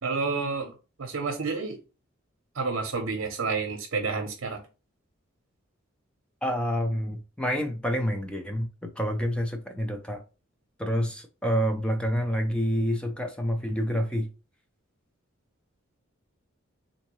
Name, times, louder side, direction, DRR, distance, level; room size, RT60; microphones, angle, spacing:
voice 1, 0.0-0.7 1.0-1.8 2.5-4.6, right 4 dB, 75° right, 0.7 m, -29 dB
voice 2, 6.4-10.2 10.8-14.3, equal, 5° left, 0.4 m, -28 dB
3.7 x 2.7 x 3.0 m
head